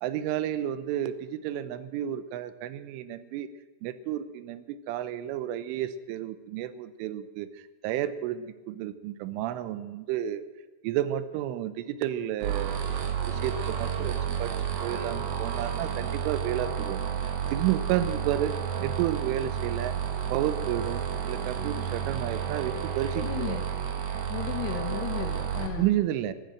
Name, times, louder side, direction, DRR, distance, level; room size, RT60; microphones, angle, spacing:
voice 1, 0.0-3.5 3.8-7.5 7.8-10.4 10.8-12.9 13.2-14.5 14.8-17.0 17.5-19.9 20.3-23.6 25.8-26.3, right 12 dB, 90° right, 14 dB, 3.3 m, -31 dB
sound 1, 12.4-25.7, right 8 dB, 65° right, 1.9 m, -31 dB
voice 2, 23.1-23.7 24.3-25.9, left 10 dB, 70° left, 3 dB, 2.8 m, -34 dB
15.5 x 12.0 x 7.6 m, 1.2 s
omnidirectional pair, 5.5 m